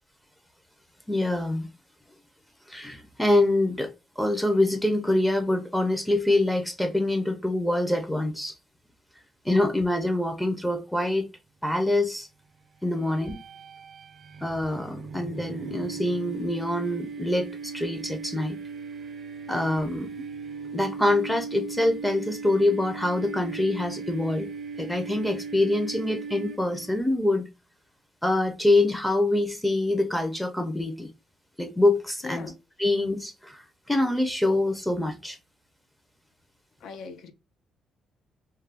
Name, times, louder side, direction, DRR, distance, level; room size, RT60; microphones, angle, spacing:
voice 1, 1.1-1.7 2.7-3.9 4.2-8.5 9.4-11.2 11.6-12.3 12.8-13.3 14.4-18.6 19.5-20.1 20.7-24.5 24.8-27.4 28.2-31.1 31.6-32.5 32.8-35.4, left 1 dB, 5° left, 0.5 m, -25 dB
sound 1, 12.9-27.0, right 5 dB, 55° right, 0.4 m, -38 dB
voice 2, 32.2-32.6 36.8-37.3, left 4 dB, 75° left, 0.6 m, -39 dB
2.3 x 2.2 x 3.3 m
cardioid pair, 90°, 0 cm